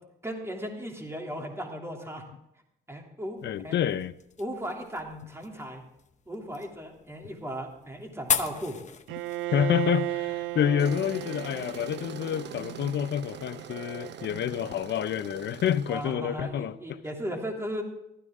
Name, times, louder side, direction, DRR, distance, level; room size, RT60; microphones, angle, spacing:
voice 1, 0.2-2.2 2.9-3.8 4.4-5.8 6.3-8.8 14.2-14.6 15.9-17.8, equal, 15° right, 3.0 m, -36 dB
voice 2, 3.4-4.1 9.5-17.0, left 9 dB, 60° left, 0.7 m, -28 dB
sound 1, 3.4-11.8, left 6 dB, 35° left, 1.0 m, -38 dB
Bowed string instrument, 9.1-15.1, right 17 dB, 85° right, 0.5 m, -36 dB
Tools, 10.8-16.1, right 7 dB, 60° right, 0.9 m, -44 dB
15.0 x 13.0 x 3.7 m
cardioid pair, 90°, 20 cm